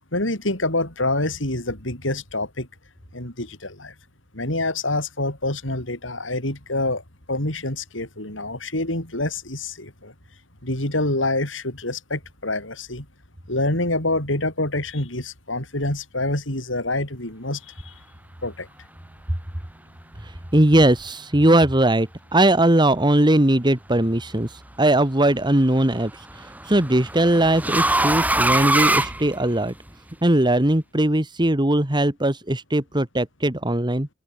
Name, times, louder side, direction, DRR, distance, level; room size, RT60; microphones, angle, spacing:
voice 1, 0.1-2.7 3.1-3.9 4.3-7.0 7.3-10.1 10.6-13.1 13.5-17.9 18.4-18.7, left 2 dB, 85° left, 8.0 m, -26 dB
voice 2, 20.5-24.5 24.8-26.1 26.7-29.7 30.2-34.1, right 1 dB, 25° right, 2.1 m, -19 dB
sound 1, 24.0-24.5 25.9-29.9, right 2 dB, 10° right, 3.2 m, -23 dB
head